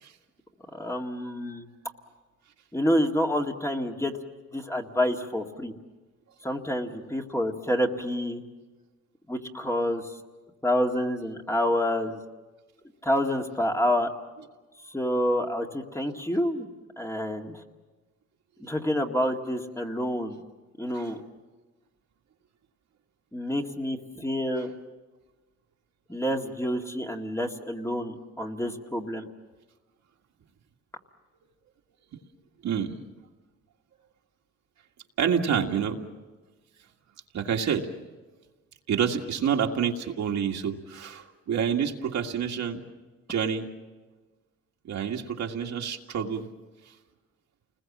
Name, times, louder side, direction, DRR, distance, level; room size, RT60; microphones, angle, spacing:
voice 1, 0.7-1.7 2.7-4.1 4.5-5.7 6.4-8.4 9.3-10.1 10.6-12.2 13.0-14.1 14.9-16.7 17.0-17.6 18.6-20.4 20.8-21.2 23.3-24.7 26.1-29.3, equal, 10° left, 2 dB, 2.0 m, -28 dB
voice 2, 32.6-33.0 35.2-36.0 37.3-37.9 38.9-42.8 43.3-43.7 44.8-46.5, right 7 dB, 65° right, 2 dB, 2.1 m, -28 dB
29.0 x 21.0 x 7.4 m, 1.2 s
cardioid pair, 90°, 30 cm